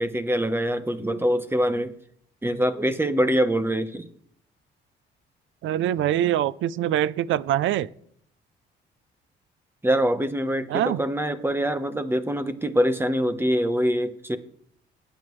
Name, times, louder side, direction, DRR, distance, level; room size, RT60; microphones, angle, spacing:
voice 1, 0.0-1.9 2.4-4.1 9.8-14.4, equal, 10° right, 11 dB, 1.0 m, -24 dB
voice 2, 5.6-7.9 10.7-11.0, right 11 dB, 75° right, 20 dB, 0.5 m, -24 dB
20.5 x 9.0 x 3.2 m, 0.67 s
cardioid pair, 90°, 20 cm